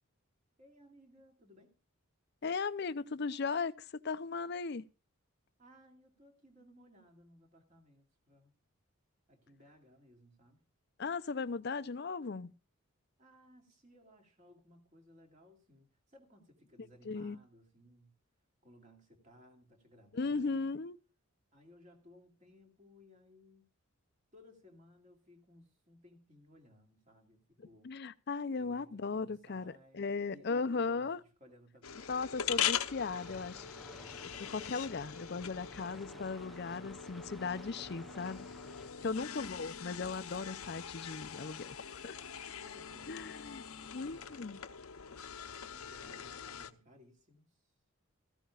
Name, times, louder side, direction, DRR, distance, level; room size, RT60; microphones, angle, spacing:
voice 1, 0.6-1.7 5.6-8.6 9.3-10.6 13.2-18.1 18.6-20.8 21.5-23.7 24.3-27.9 28.6-32.6 38.9-39.4 42.6-44.6 45.6-47.7, left 1 dB, 35° right, 2.5 m, -61 dB
voice 2, 2.4-4.8 11.0-12.5 17.1-17.4 20.1-21.0 27.8-31.2 32.1-33.6 34.4-38.5 39.0-42.2 43.1-43.6 43.9-44.6, left 4 dB, 50° left, 0.5 m, -37 dB
sound 1, 31.8-46.7, left 9 dB, 85° left, 0.8 m, -42 dB
sound 2, 33.0-38.9, equal, ahead, 0.6 m, -54 dB
16.5 x 14.5 x 2.4 m
head